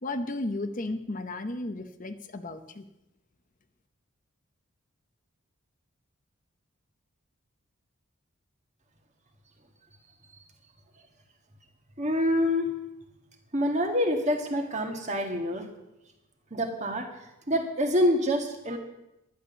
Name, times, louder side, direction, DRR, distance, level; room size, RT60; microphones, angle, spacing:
voice 1, 0.0-2.9, left 2 dB, 35° left, 8 dB, 0.8 m, -34 dB
voice 2, 12.0-12.8 13.5-15.6 16.5-17.1 17.5-18.8, equal, 35° right, 4 dB, 1.7 m, -26 dB
11.0 x 10.5 x 7.0 m, 0.90 s
head